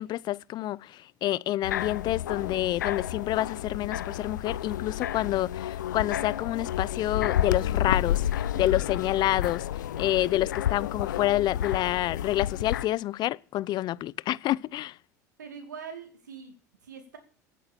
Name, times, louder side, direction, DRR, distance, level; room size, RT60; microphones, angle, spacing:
voice 1, 0.0-15.0, left 14 dB, 50° left, 0.6 m, -28 dB
sound 1, 1.6-12.8, left 11 dB, 85° left, 0.7 m, -31 dB
voice 2, 8.5-8.9 15.4-16.6 16.8-17.2, right 6 dB, 90° right, 2.6 m, -43 dB
15.5 x 8.7 x 6.9 m
hypercardioid pair, 85°, 10 cm